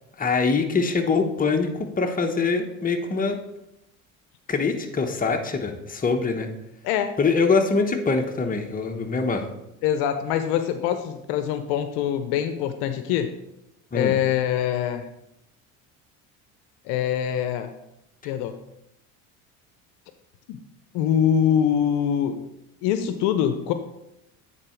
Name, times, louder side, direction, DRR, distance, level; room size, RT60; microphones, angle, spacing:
voice 1, 0.2-3.4 4.5-6.5 7.2-9.5 13.9-14.1, left 4 dB, 20° left, 3 dB, 1.1 m, -23 dB
voice 2, 6.8-7.1 9.8-13.3 13.9-15.1 16.9-17.7 18.2-18.6 20.5-20.6 20.9-22.4 22.8-23.7, left 9 dB, 70° left, 9 dB, 0.7 m, -24 dB
8.8 x 4.1 x 4.4 m, 0.84 s
hypercardioid pair, 75°, 41 cm